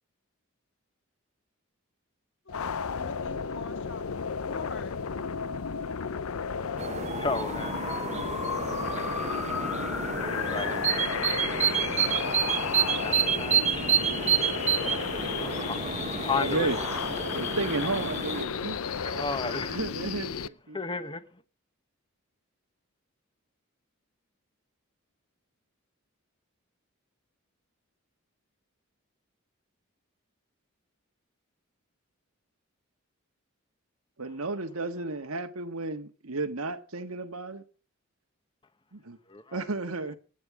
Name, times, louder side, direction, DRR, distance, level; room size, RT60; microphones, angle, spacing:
voice 1, 2.4-4.1 4.4-5.0, left 3 dB, 55° left, 2.3 m, -44 dB
sound 1, 2.5-20.5, left 6 dB, 85° left, 0.6 m, -33 dB
voice 2, 6.6-8.3 8.6-9.0 10.0-10.8 13.0-13.7 13.9-14.3 15.4-15.8 16.1-16.7 18.9-19.7 20.7-21.4 39.3-39.6, left 4 dB, 25° left, 1.2 m, -35 dB
sound 2, 6.8-18.4, right 7 dB, 30° right, 0.9 m, -29 dB
voice 3, 16.1-16.8 17.4-18.8 19.1-20.8 34.2-37.6 38.9-39.2 39.5-40.2, right 3 dB, 85° right, 1.6 m, -33 dB
25.0 x 9.9 x 4.9 m
head